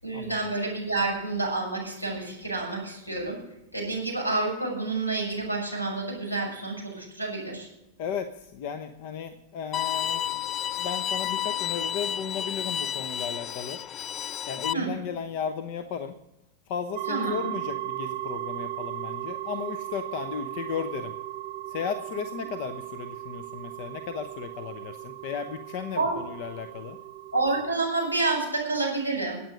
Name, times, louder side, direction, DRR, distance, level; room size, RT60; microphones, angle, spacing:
voice 1, 0.0-3.4 3.7-7.7 14.7-14.9 17.1-17.5 25.9-26.2 27.3-29.4, right 3 dB, 85° left, 1 dB, 6.3 m, -29 dB
voice 2, 8.0-10.2 10.8-13.8 14.5-16.1 16.7-21.1 21.7-27.0, left 7 dB, 45° left, 11 dB, 0.9 m, -35 dB
Bowed string instrument, 9.7-14.7, left 10 dB, 30° left, 0.4 m, -31 dB
sound 1, 16.9-27.7, right 14 dB, 45° right, 0.8 m, -37 dB
18.0 x 8.7 x 5.2 m, 0.90 s
figure-of-eight pair, 90°, 0 cm